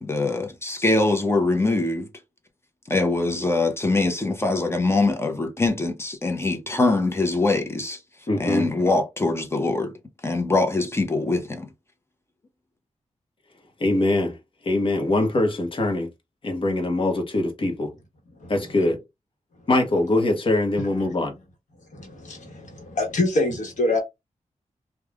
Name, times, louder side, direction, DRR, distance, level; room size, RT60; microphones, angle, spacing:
voice 1, 0.0-2.1 2.9-8.0 8.4-9.9 10.2-11.7, left 2 dB, 20° left, 0.8 m, -23 dB
voice 2, 8.3-8.7 13.8-14.4 14.6-16.1 16.4-17.9 18.5-19.0 19.7-21.3, left 2 dB, 45° left, 1.0 m, -22 dB
voice 3, 21.9-24.0, left 2 dB, 75° left, 1.1 m, -25 dB
3.2 x 2.3 x 2.4 m
wide cardioid pair, 105°, 13 cm